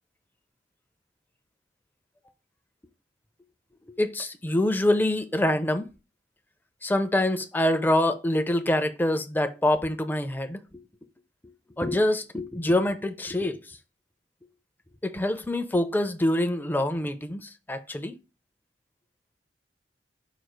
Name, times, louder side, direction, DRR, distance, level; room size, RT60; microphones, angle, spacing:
voice 1, 4.0-5.9 6.8-10.6 11.8-13.8 15.0-18.2, left 1 dB, 10° left, 0.4 m, -25 dB
4.9 x 2.4 x 4.5 m
head